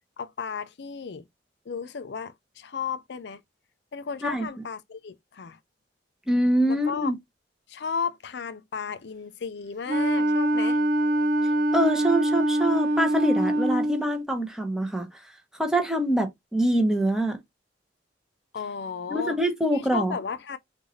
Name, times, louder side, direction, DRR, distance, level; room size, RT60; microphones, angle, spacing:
voice 1, 0.2-1.2 1.7-3.4 3.9-5.6 6.7-7.1 7.7-10.8 18.5-19.4 19.7-20.6, left 6 dB, 70° left, 0.5 m, -34 dB
voice 2, 6.3-7.2 11.7-15.1 15.6-17.4 19.1-20.2, right 1 dB, 5° right, 1.1 m, -24 dB
Wind instrument woodwind instrument, 9.9-14.1, right 1 dB, 50° right, 0.7 m, -23 dB
6.2 x 2.6 x 3.1 m
head